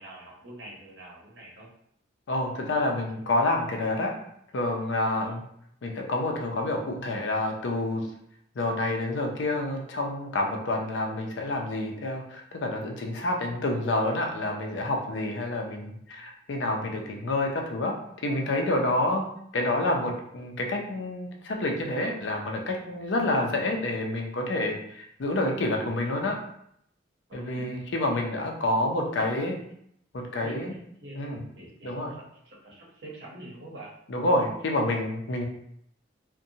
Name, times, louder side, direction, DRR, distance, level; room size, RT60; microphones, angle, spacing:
voice 1, 0.0-1.7 5.2-5.4 27.3-27.7 28.0-28.2 29.1-29.6 30.3-31.2 31.6-33.9, right 1 dB, 65° right, -3 dB, 0.8 m, -45 dB
voice 2, 2.3-4.1 4.5-5.4 5.8-8.0 8.6-17.9 18.2-19.2 19.5-26.4 27.3-29.5 30.1-30.7 31.1-31.4 31.8-32.1 34.1-35.5, left 2 dB, 75° left, 1 dB, 0.5 m, -28 dB
2.6 x 2.2 x 2.7 m, 0.71 s
head